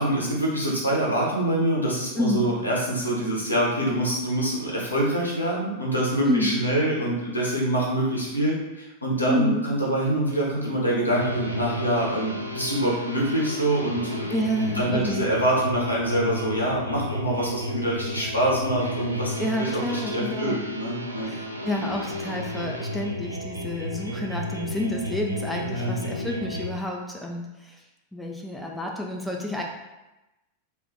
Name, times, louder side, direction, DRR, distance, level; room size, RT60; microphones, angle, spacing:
voice 1, 0.0-14.2 14.8-19.3 19.6-21.3 25.7-26.2, right 1 dB, 85° left, -4 dB, 0.8 m, -25 dB
voice 2, 2.1-2.5 6.3-6.5 9.3-9.7 14.3-15.3 19.4-20.6 21.2-27.8 28.1-29.6, left 1 dB, ahead, -1 dB, 0.4 m, -29 dB
sound 1, 11.1-26.7, left 1 dB, 90° right, 0.3 m, -32 dB
2.6 x 2.4 x 3.6 m, 1.0 s
figure-of-eight pair, 90°, 0 cm